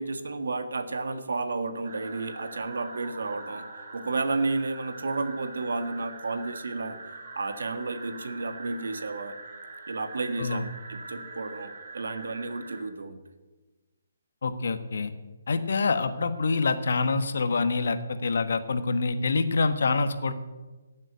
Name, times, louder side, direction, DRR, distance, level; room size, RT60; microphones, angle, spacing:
voice 1, 0.0-3.7 3.9-7.0 7.3-9.3 9.9-10.6 10.9-13.2, right 3 dB, 80° right, 9 dB, 1.6 m, -32 dB
sound 1, 1.8-12.8, right 3 dB, 50° right, 3.5 m, -43 dB
voice 2, 14.4-15.1 15.5-20.3, left 4 dB, 65° left, 10 dB, 1.3 m, -26 dB
15.0 x 7.4 x 8.3 m, 1.2 s
hypercardioid pair, 165°, 0 cm